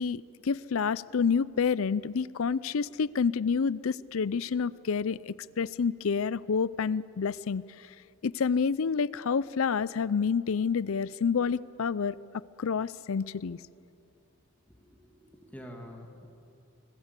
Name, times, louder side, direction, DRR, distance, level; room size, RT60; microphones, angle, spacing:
voice 1, 0.0-7.9 8.2-13.6, left 5 dB, 70° left, 19 dB, 0.5 m, -29 dB
voice 2, 14.7-16.3, equal, 5° left, 1 dB, 2.5 m, -47 dB
25.5 x 20.5 x 8.2 m, 2.7 s
head